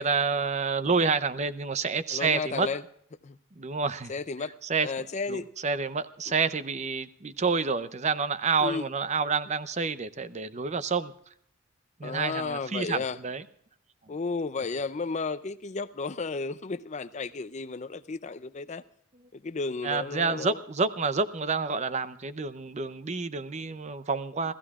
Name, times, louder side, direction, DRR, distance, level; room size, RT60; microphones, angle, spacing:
voice 1, 0.0-2.7 3.6-4.1 4.7-11.1 12.0-13.4 19.8-24.5, right 4 dB, 35° right, 0.6 m, -28 dB
voice 2, 2.1-2.8 3.2-3.4 4.1-4.5 4.8-5.5 6.3-6.4 8.6-8.9 12.0-13.2 14.1-18.8 19.3-20.6, left 4 dB, 35° left, 0.5 m, -33 dB
28.5 x 15.0 x 2.4 m
head